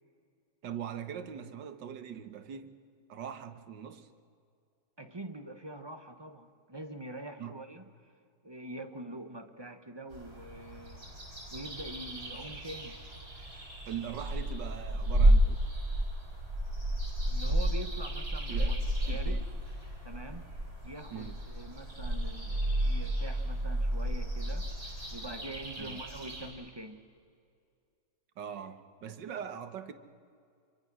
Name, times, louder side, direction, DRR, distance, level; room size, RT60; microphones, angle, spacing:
voice 1, 0.6-2.7 3.1-4.1 7.4-7.6 13.9-15.6 18.5-19.4 21.1-21.3 25.8-26.0 28.4-29.9, right 8 dB, 75° right, 10 dB, 1.9 m, -41 dB
voice 2, 5.0-7.9 8.4-11.0 11.5-13.0 17.2-19.4 20.0-20.5 20.8-24.7 25.1-27.0, right 1 dB, 15° right, 7 dB, 1.1 m, -44 dB
sound 1, 10.1-26.5, right 1 dB, 50° right, 6.8 m, -32 dB
27.5 x 23.5 x 6.3 m, 2.3 s
omnidirectional pair, 1.9 m